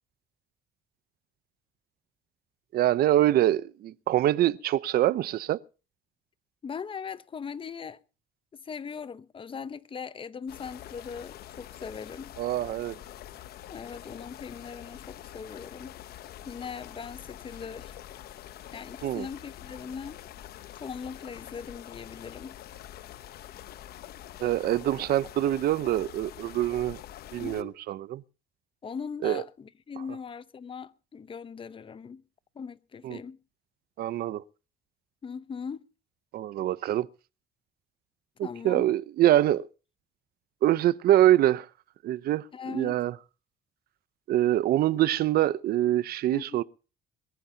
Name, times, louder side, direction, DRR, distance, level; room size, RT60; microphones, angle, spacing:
voice 1, 2.7-5.6 12.4-13.0 19.0-19.3 24.4-27.0 27.3-28.2 29.2-29.4 33.0-33.2 34.0-34.4 36.3-37.1 38.6-39.7 40.6-41.7 42.0-42.4 42.7-43.1 44.3-46.6, right 13 dB, 65° right, 0.7 m, -24 dB
voice 2, 6.6-8.0 8.6-12.3 13.7-16.0 16.4-18.0 18.7-20.2 20.8-22.6 24.4-24.5 27.4-27.7 28.8-32.2 32.5-33.4 35.2-35.8 38.4-38.9 42.5-43.0 46.3-46.6, left 6 dB, 30° left, 0.8 m, -40 dB
sound 1, 10.5-27.6, left 12 dB, 65° left, 0.9 m, -45 dB
22.0 x 14.5 x 2.8 m
cardioid pair, 110°, 17 cm